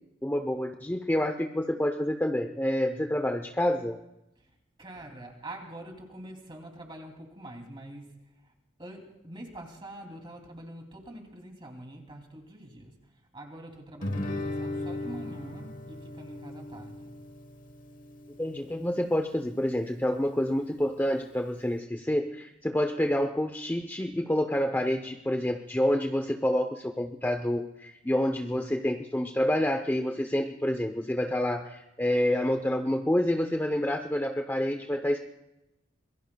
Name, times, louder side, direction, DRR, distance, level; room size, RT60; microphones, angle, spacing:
voice 1, 0.2-4.0 18.4-35.2, left 1 dB, 10° left, 5 dB, 0.7 m, -28 dB
voice 2, 4.4-8.5 8.8-17.1, right 1 dB, 25° right, 2 dB, 2.8 m, -45 dB
Guitar, 14.0-19.1, left 2 dB, 45° left, 1.0 m, -37 dB
26.0 x 22.0 x 2.3 m, 0.91 s
head